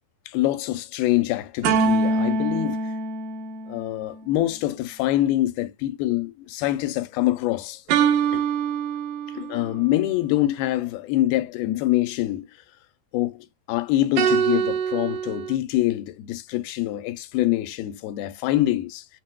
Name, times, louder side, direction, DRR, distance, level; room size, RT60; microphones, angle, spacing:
voice 1, 0.3-2.9 3.7-8.0 8.3-8.4 9.3-12.5 13.1-19.1, left 15 dB, 85° left, 2.5 m, -25 dB
sound 1, 1.6-4.2 7.9-9.7 14.2-15.6, right 5 dB, 90° right, 2.7 m, -24 dB
6.2 x 2.1 x 2.2 m
omnidirectional pair, 4.3 m